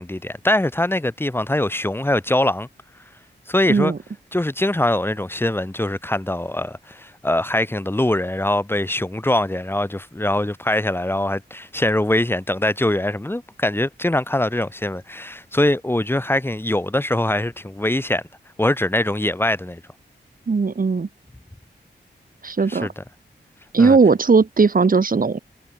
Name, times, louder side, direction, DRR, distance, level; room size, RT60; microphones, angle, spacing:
voice 1, 0.0-2.7 3.5-3.9 4.3-18.2 18.6-19.8 22.7-23.0 23.8-24.0, left 1 dB, 10° left, 3.1 m, -22 dB
voice 2, 3.7-4.0 20.5-21.1 22.4-22.9 23.7-25.4, right 4 dB, 50° right, 5.3 m, -17 dB
wide cardioid pair, 120°, 19 cm